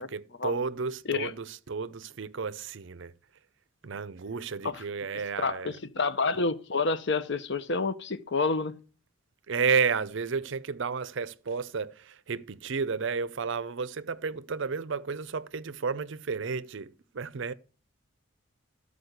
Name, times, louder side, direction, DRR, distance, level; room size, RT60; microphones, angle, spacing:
voice 1, 0.0-3.1 3.8-5.7 9.5-17.5, right 5 dB, 60° right, 0.5 m, -32 dB
voice 2, 5.4-8.7, left 4 dB, 55° left, 0.8 m, -29 dB
13.5 x 5.1 x 7.9 m
head